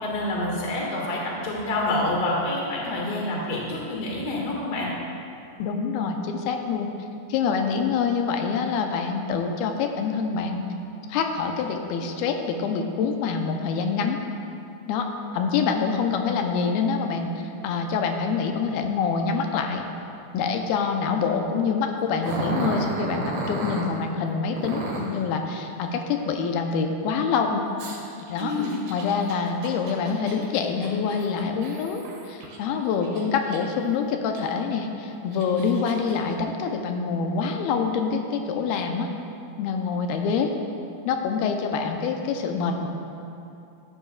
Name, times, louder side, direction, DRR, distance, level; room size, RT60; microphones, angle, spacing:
voice 1, 0.0-4.9 28.4-28.7, left 2 dB, 40° left, -3 dB, 1.6 m, -27 dB
voice 2, 5.6-6.9 7.3-10.7 11.1-14.2 14.9-15.1 15.3-17.3 17.6-19.8 20.3-27.6 28.2-28.5 28.9-39.1 39.6-40.5 41.1-42.9, left 5 dB, 85° left, 4 dB, 2.6 m, -26 dB
Growling, 22.2-23.9 24.6-25.2 27.8-32.6 33.0-33.8 34.4-34.5 35.1-36.1, right 2 dB, 85° right, 3.4 m, -33 dB
15.0 x 11.0 x 2.3 m, 2.7 s
omnidirectional pair, 4.3 m